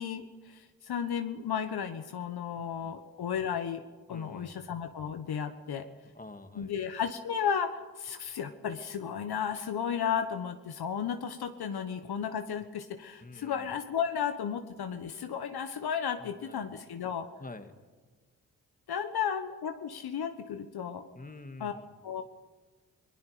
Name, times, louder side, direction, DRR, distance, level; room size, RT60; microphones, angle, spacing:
voice 1, 0.0-3.8 4.1-5.9 6.5-17.3 18.9-21.1 21.6-21.8 22.0-22.2, left 7 dB, 65° left, 7 dB, 1.3 m, -34 dB
voice 2, 4.1-4.6 6.1-6.7 13.2-13.7 16.4-16.6 17.4-17.7 21.1-21.9, left 2 dB, 20° left, 7 dB, 2.1 m, -47 dB
28.5 x 19.0 x 5.1 m, 1.3 s
hypercardioid pair, 40°, 42 cm